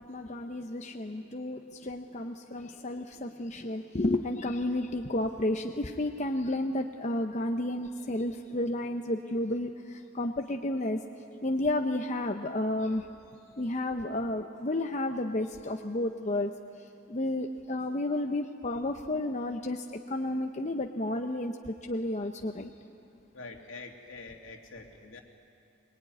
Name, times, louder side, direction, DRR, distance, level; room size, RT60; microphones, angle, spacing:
voice 1, 0.0-11.0 11.4-13.0 13.6-16.5 17.1-22.7, left 1 dB, 35° left, 4 dB, 0.8 m, -32 dB
voice 2, 23.3-25.2, left 3 dB, 75° left, 2 dB, 2.5 m, -45 dB
23.5 x 21.5 x 9.3 m, 2.6 s
head